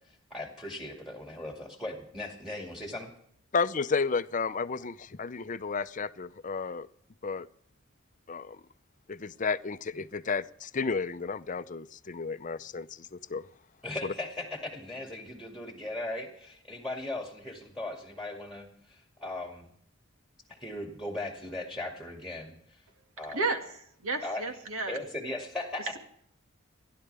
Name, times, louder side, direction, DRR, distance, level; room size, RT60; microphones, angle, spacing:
voice 1, 0.1-3.1 13.8-19.7 20.5-22.8 23.2-23.4 24.2-24.4 24.9-26.0, left 2 dB, ahead, 2 dB, 2.2 m, -38 dB
voice 2, 3.5-6.9 7.2-7.5 8.3-8.6 9.1-13.5 14.0-14.1, left 4 dB, 35° left, 14 dB, 0.6 m, -32 dB
voice 3, 23.3-25.0, right 3 dB, 85° right, 5 dB, 2.1 m, -32 dB
28.5 x 11.5 x 3.4 m, 0.70 s
head